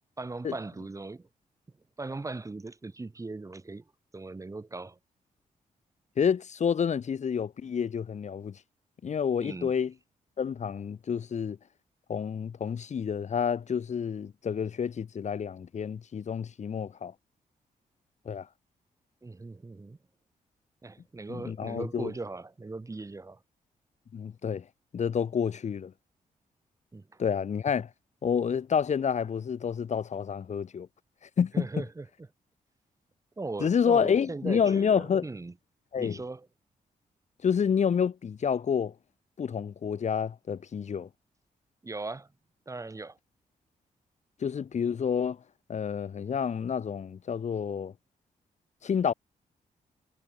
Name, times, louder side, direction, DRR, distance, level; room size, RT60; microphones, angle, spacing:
voice 1, 0.2-1.3 2.0-3.8 4.1-5.0 9.4-9.7 19.2-20.0 20.8-23.4 26.9-27.2 31.5-32.1 33.4-35.5 36.0-36.5 41.8-42.3 42.7-43.2, right 3 dB, 20° right, 7.5 m, -39 dB
voice 2, 6.2-8.6 9.0-9.9 10.4-11.6 12.1-17.1 18.2-18.5 21.3-22.1 24.1-24.6 24.9-25.9 27.2-27.9 28.2-30.9 31.4-31.6 33.6-35.3 35.9-36.2 37.4-38.9 39.4-41.1 44.4-45.4 45.7-47.9 48.8-49.1, left 7 dB, 55° left, 4.9 m, -29 dB
cardioid pair, 110°, 14 cm